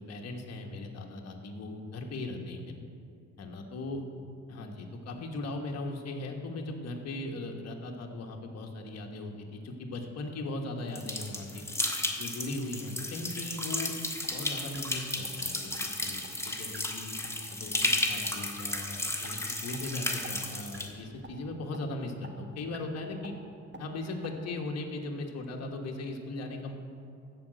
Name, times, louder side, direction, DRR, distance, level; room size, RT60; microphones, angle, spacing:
voice 1, 0.0-2.8 3.4-4.0 4.5-11.6 12.2-13.9 14.3-17.1 17.5-23.3 23.8-26.7, left 2 dB, 55° left, 2 dB, 1.4 m, -38 dB
sound 1, 11.0-20.9, left 1 dB, 10° left, 1.4 m, -34 dB
sound 2, 14.2-14.4 14.7-14.8 15.2-15.3 15.7-15.8 16.2-16.3 16.7-16.8 17.2-17.4 17.7-17.9 18.2-18.3 18.7-18.8 19.2-19.3 19.7-19.8 20.2-20.3 20.7-20.9 21.2-21.3 21.7-21.8 22.2-22.3 22.7-22.8 23.2-23.3 23.7-23.8 24.2-24.3, right 3 dB, 35° right, 1.4 m, -46 dB
14.0 x 5.0 x 7.9 m, 2.5 s
cardioid pair, 90°, 30 cm